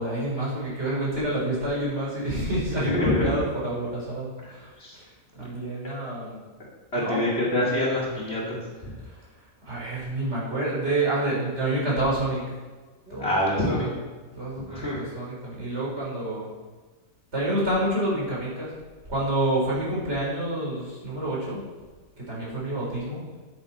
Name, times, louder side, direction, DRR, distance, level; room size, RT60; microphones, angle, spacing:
voice 1, 0.0-4.7 5.0-5.1 5.4-6.4 6.9-7.2 9.0-9.2 9.6-12.4 13.1-13.9 14.3-16.5 17.3-18.7 19.1-21.6 22.3-23.2, right 1 dB, 50° right, -6 dB, 4.4 m, -28 dB
voice 2, 2.7-3.3 4.8-5.0 5.4-5.5 6.9-8.6 13.1-13.9 14.7-15.0, left 1 dB, 45° left, -5 dB, 3.0 m, -26 dB
10.0 x 9.5 x 4.3 m, 1.3 s
omnidirectional pair, 1.5 m